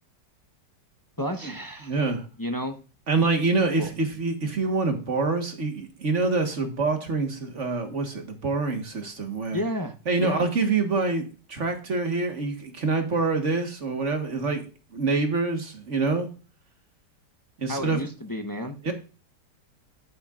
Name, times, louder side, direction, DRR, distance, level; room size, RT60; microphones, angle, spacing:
voice 1, 1.2-2.0 2.4-2.8 3.8-3.9 9.5-9.9 10.2-10.5 17.7-18.8, equal, 20° left, 0.6 m, -31 dB
voice 2, 1.8-2.3 3.1-9.6 10.1-14.7 14.9-16.3 17.6-18.1 18.8-18.9, right 3 dB, 45° right, 1.6 m, -26 dB
11.0 x 8.7 x 2.5 m
omnidirectional pair, 1.9 m